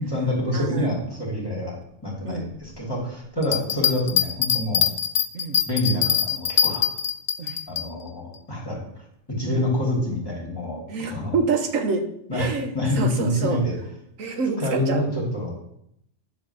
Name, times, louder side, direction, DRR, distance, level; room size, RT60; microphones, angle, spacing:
voice 1, 0.0-1.8 2.0-4.9 5.6-6.9 7.7-8.8 9.3-11.3 12.3-13.7 14.6-15.5, left 1 dB, 20° left, -3 dB, 2.6 m, -27 dB
voice 2, 0.5-0.9 2.2-2.5 5.3-5.6 7.4-7.6 9.5-9.6 10.9-12.0 12.3-13.6 14.2-15.0, right 4 dB, 90° right, 6 dB, 1.4 m, -27 dB
sound 1, 3.4-7.9, left 8 dB, 55° left, 0.6 m, -23 dB
9.7 x 4.0 x 6.6 m, 0.74 s
omnidirectional pair, 1.3 m